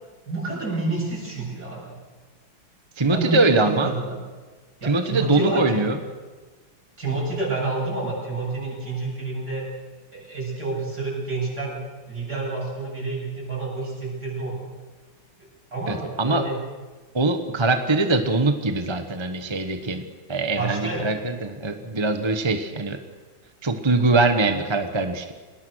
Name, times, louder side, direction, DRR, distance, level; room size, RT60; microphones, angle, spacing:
voice 1, 0.3-2.0 3.1-4.2 4.8-5.9 7.0-9.7 10.1-14.7 15.7-16.6 20.5-21.1, right 3 dB, 50° right, -4 dB, 8.7 m, -29 dB
voice 2, 3.0-3.9 4.8-6.0 15.9-16.4 17.1-20.0 20.3-23.0 23.6-25.3, right 3 dB, 20° right, 7 dB, 0.9 m, -22 dB
30.0 x 19.0 x 6.4 m, 1.3 s
omnidirectional pair, 2.2 m